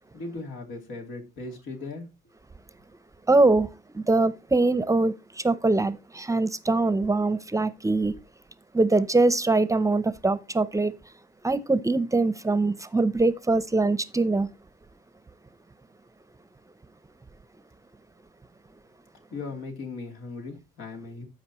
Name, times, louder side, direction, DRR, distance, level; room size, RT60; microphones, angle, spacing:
voice 1, 0.1-2.1 19.3-21.2, left 3 dB, 85° left, 3.0 m, -38 dB
voice 2, 3.3-8.1 8.7-10.9 11.4-14.5, right 3 dB, 15° right, 0.6 m, -23 dB
13.5 x 5.2 x 3.0 m
cardioid pair, 90°, 20 cm